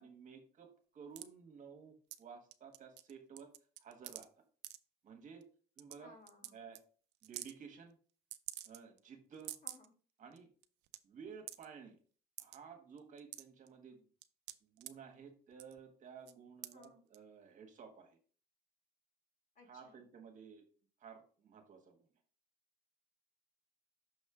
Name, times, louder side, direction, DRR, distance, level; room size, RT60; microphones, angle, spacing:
voice 1, 0.0-3.5 3.8-4.4 5.0-5.4 5.8-6.1 6.5-6.8 7.2-8.0 8.6-9.6 10.2-10.5 11.0-12.0 12.4-14.1 14.6-18.2 19.7-20.6 21.0-22.0, right 6 dB, 50° right, 4 dB, 1.4 m, -54 dB
sound 1, 1.2-1.3 2.1-2.2 2.5-3.1 3.4-4.3 4.6-4.8 5.4-5.5 5.8-5.9 6.3-6.5 6.8-6.9 7.2-7.5 8.3-9.0 9.3-9.9 10.3-10.4 10.6-11.0 11.5-11.7 12.4-12.6 13.0-13.7 14.2-14.9 15.5-15.8 16.3-16.4 16.6-16.9 17.1-17.2, right 15 dB, 90° right, 0.5 m, -47 dB
voice 2, 6.0-6.6 9.6-9.9 16.7-17.0 19.6-20.0, left 2 dB, 50° left, 1 dB, 2.0 m, -61 dB
6.3 x 3.2 x 4.9 m, 0.41 s
cardioid pair, 110°, 17 cm